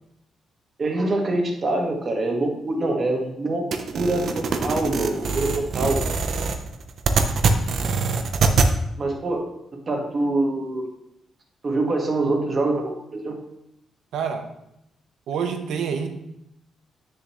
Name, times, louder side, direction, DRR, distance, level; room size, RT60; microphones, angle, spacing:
voice 1, 0.8-3.6 3.9-6.0 9.0-9.4 9.7-10.9 11.6-13.4, right 2 dB, 35° right, 1 dB, 1.7 m, -25 dB
sound 1, 3.7-8.7, right 4 dB, 60° right, 0.8 m, -23 dB
voice 2, 14.1-14.5 15.3-16.1, right 6 dB, 80° right, 6 dB, 1.1 m, -27 dB
9.7 x 6.7 x 3.2 m, 0.82 s
cardioid pair, 130°, 0 cm